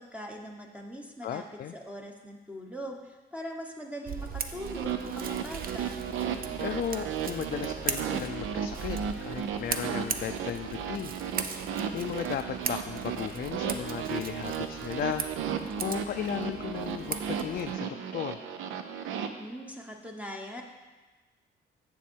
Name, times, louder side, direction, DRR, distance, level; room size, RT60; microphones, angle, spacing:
voice 1, 0.0-1.4 1.7-5.9 19.4-20.6, equal, 5° right, 1 dB, 1.0 m, -41 dB
voice 2, 1.2-1.7 6.6-11.1 11.5-11.6 11.9-15.5 15.8-18.4, left 9 dB, 50° left, 7 dB, 0.4 m, -35 dB
Scissors, 4.0-17.7, right 6 dB, 45° right, 0.6 m, -39 dB
sound 1, 4.5-19.3, right 7 dB, 90° right, 0.6 m, -35 dB
7.2 x 7.2 x 4.5 m, 1.2 s
cardioid pair, 90°, 20 cm